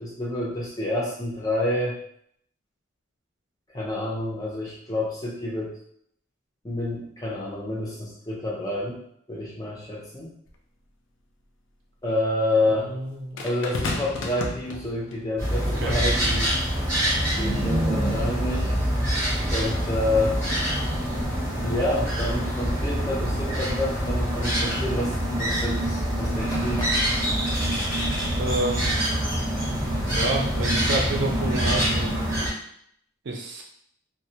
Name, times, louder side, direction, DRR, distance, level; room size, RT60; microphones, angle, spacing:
voice 1, 0.0-2.0 3.7-5.7 6.6-9.0 9.3-10.3 12.0-12.9 13.4-16.5 17.4-18.7 19.5-20.4 21.6-27.2, left 1 dB, 20° left, -4 dB, 0.5 m, -28 dB
sound 1, 10.5-10.6 13.4-15.3 16.2-16.4, left 2 dB, 80° left, 0.4 m, -32 dB
voice 2, 12.7-13.8 15.6-16.0 28.4-29.0 30.1-32.2 33.2-33.6, right 2 dB, 65° right, 0 dB, 0.5 m, -29 dB
sound 2, 15.4-32.5, equal, 15° right, 0.7 m, -25 dB
2.2 x 2.1 x 2.7 m, 0.68 s
head